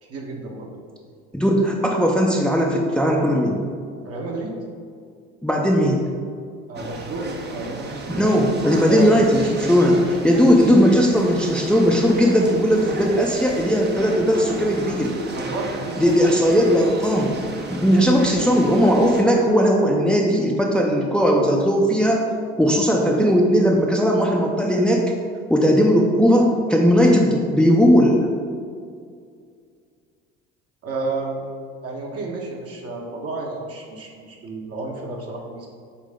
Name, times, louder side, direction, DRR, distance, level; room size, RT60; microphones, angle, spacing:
voice 1, 0.0-0.7 4.0-4.6 6.7-8.3 8.8-9.4 10.5-10.7 15.3-16.5 30.8-35.7, right 2 dB, 50° right, -1 dB, 1.5 m, -31 dB
voice 2, 1.3-3.6 5.4-6.1 8.2-15.1 16.0-17.3 17.7-22.3 22.6-25.1 25.5-28.3, equal, 5° left, 0 dB, 0.7 m, -18 dB
sound 1, 6.8-19.2, right 2 dB, 30° right, 0.9 m, -33 dB
8.5 x 3.2 x 3.8 m, 2.2 s
hypercardioid pair, 65°, 32 cm